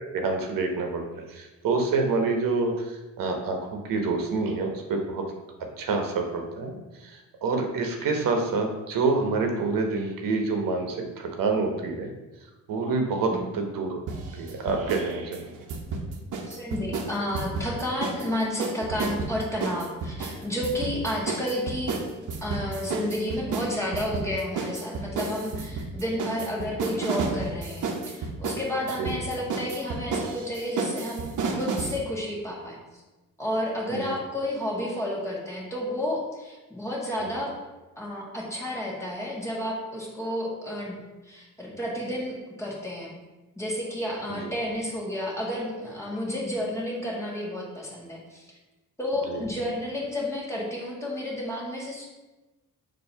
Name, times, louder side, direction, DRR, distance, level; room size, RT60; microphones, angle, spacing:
voice 1, 0.0-5.3 5.6-12.1 12.7-14.0 14.3-15.6 29.0-29.1 33.9-34.2 44.3-44.5 49.3-49.4, right 3 dB, 85° right, 3 dB, 1.1 m, -27 dB
sound 1, 14.1-15.1 15.3-18.3 18.6-32.0, right 4 dB, 65° right, 1.0 m, -32 dB
voice 2, 16.5-22.0 22.4-32.8 33.4-37.5 38.0-43.1 43.5-48.5 49.0-52.1, left 1 dB, 10° left, -4 dB, 1.7 m, -31 dB
7.2 x 3.0 x 5.6 m, 1.1 s
cardioid pair, 140°, 32 cm